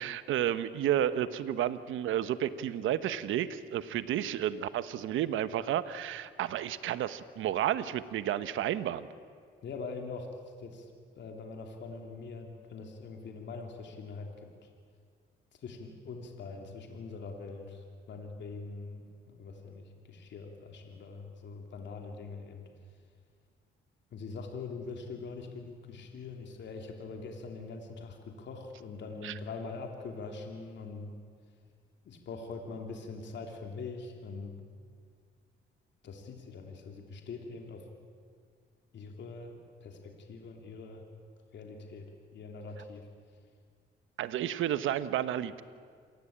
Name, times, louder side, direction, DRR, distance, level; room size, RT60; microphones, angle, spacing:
voice 1, 0.0-9.1 29.2-29.3 44.2-45.6, right 11 dB, 80° right, 13 dB, 1.1 m, -31 dB
voice 2, 9.6-10.3 10.6-10.9 11.2-14.7 15.5-22.7 24.1-31.1 32.0-34.6 36.0-37.9 38.9-41.0 41.5-42.1 42.3-43.1, left 4 dB, 65° left, 3 dB, 3.2 m, -43 dB
27.5 x 19.0 x 8.8 m, 2.1 s
cardioid pair, 90°, 20 cm